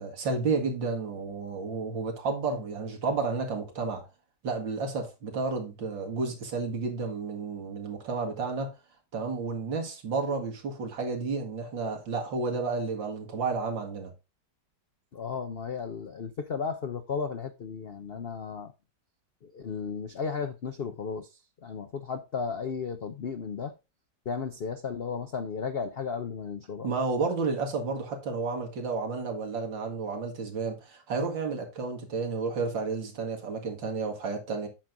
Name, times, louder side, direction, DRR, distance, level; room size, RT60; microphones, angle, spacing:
voice 1, 0.0-4.1 4.4-8.7 9.1-14.1 26.8-34.7, right 4 dB, 80° right, 2.7 m, -31 dB
voice 2, 15.1-18.7 19.4-21.3 21.6-23.7 24.3-26.9, left 5 dB, 75° left, 0.5 m, -34 dB
8.9 x 6.1 x 3.8 m
omnidirectional pair, 2.0 m